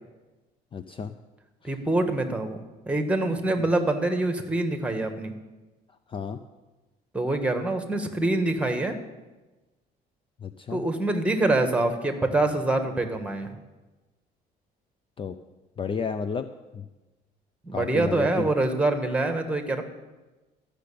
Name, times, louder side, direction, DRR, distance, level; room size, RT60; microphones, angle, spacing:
voice 1, 0.7-1.1 6.1-6.4 10.4-10.8 15.2-15.3 15.8-16.5 16.7-16.8 17.7-18.5, left 5 dB, 30° left, 10 dB, 0.5 m, -31 dB
voice 2, 1.6-2.6 2.9-5.3 7.1-9.0 10.7-13.5 17.6-19.8, right 2 dB, 5° right, 6 dB, 1.6 m, -25 dB
13.0 x 6.6 x 8.6 m, 1.2 s
cardioid pair, 110°, 17 cm